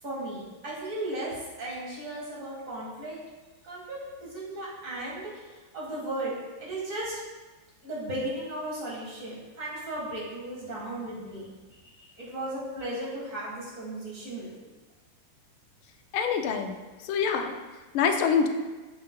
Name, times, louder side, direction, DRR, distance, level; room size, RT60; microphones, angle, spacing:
voice 1, 0.0-3.2 3.6-5.3 5.7-7.2 7.8-11.5 11.8-14.5, right 1 dB, 40° right, -5 dB, 1.9 m, -36 dB
voice 2, 16.1-16.8 17.0-17.5 17.9-18.5, left 6 dB, 90° left, 5 dB, 1.5 m, -25 dB
6.9 x 6.6 x 2.2 m, 1.2 s
omnidirectional pair, 2.3 m